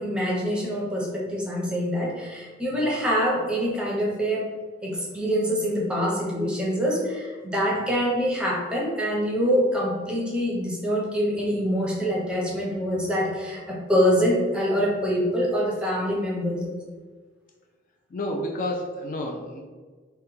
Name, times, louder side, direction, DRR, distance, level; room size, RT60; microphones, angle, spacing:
voice 1, 0.0-4.5 4.8-16.8, equal, 5° right, -3 dB, 0.6 m, -25 dB
voice 2, 18.1-19.6, left 1 dB, 45° left, 1 dB, 0.4 m, -31 dB
3.3 x 2.2 x 3.0 m, 1.5 s
head